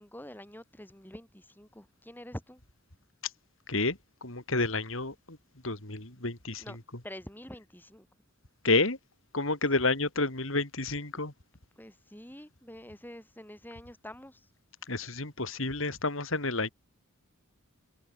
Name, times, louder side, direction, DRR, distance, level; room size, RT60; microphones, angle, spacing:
voice 1, 0.0-2.6 6.6-6.8 7.0-8.1 11.8-14.4, left 1 dB, 10° left, 4.6 m, -46 dB
voice 2, 3.7-5.4 5.6-6.8 8.6-9.0 9.3-11.3 14.9-16.7, left 3 dB, 65° left, 3.5 m, -30 dB
head